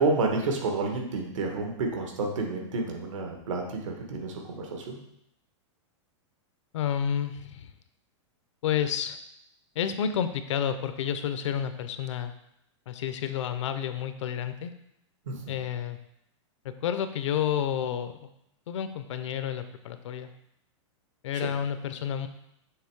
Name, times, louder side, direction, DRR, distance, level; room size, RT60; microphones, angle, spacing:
voice 1, 0.0-5.0 15.3-15.5 21.3-21.5, right 3 dB, 80° right, 2 dB, 1.4 m, -30 dB
voice 2, 6.7-7.7 8.6-9.2 9.8-12.3 12.9-14.7 15.5-16.0 16.6-18.2 18.7-20.3 21.2-22.3, left 9 dB, 70° left, 10 dB, 0.6 m, -30 dB
6.6 x 3.1 x 4.6 m, 0.79 s
supercardioid pair, 160°, 16 cm